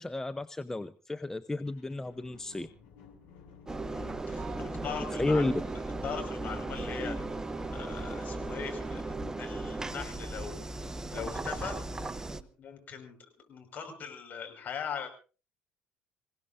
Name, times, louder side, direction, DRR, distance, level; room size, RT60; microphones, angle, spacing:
voice 1, 0.0-2.7 5.2-5.5, left 2 dB, 15° left, 12 dB, 0.7 m, -32 dB
sound 1, 1.6-9.1 9.7-9.8, left 6 dB, 70° left, 6.1 m, -59 dB
Engine, 3.7-12.4, right 2 dB, 15° right, 1.0 m, -36 dB
voice 2, 3.9-5.5 6.0-7.2 7.7-10.5 11.1-11.8 12.4-13.2 13.5-15.1, left 7 dB, 45° left, 4 dB, 5.2 m, -40 dB
Telephone, 4.3-6.2 7.0-8.9 10.3-10.4 12.0-12.2, right 4 dB, 35° right, 7.7 m, -51 dB
27.0 x 17.0 x 2.6 m, 0.35 s
hypercardioid pair, 60°, 4 cm